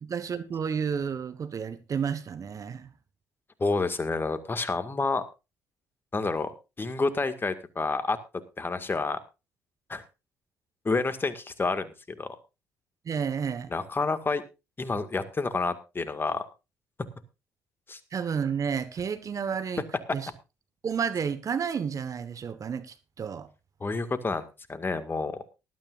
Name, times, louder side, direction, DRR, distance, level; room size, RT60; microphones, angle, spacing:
voice 1, 0.0-2.9 13.0-13.7 18.1-19.8 20.1-20.3 20.8-23.5, right 7 dB, 45° right, 1.3 m, -31 dB
voice 2, 3.6-5.2 6.1-6.5 6.8-8.2 8.6-9.2 9.9-10.0 10.8-12.4 13.7-14.4 14.8-16.4 17.9-18.0 23.8-25.4, left 3 dB, 30° left, 1.9 m, -29 dB
19.0 x 12.5 x 2.5 m
hypercardioid pair, 50°, 8 cm